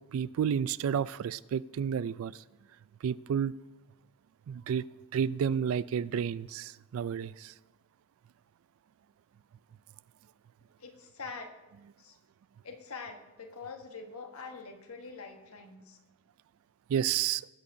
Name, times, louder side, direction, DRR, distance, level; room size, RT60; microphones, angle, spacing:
voice 1, 0.1-2.4 3.0-3.5 4.5-4.8 5.1-7.6 16.9-17.5, right 8 dB, 70° right, 20 dB, 0.3 m, -31 dB
voice 2, 10.8-11.5 12.0-12.2 12.6-16.0, left 4 dB, 80° left, 4 dB, 1.2 m, -44 dB
19.0 x 8.4 x 2.7 m, 1.1 s
head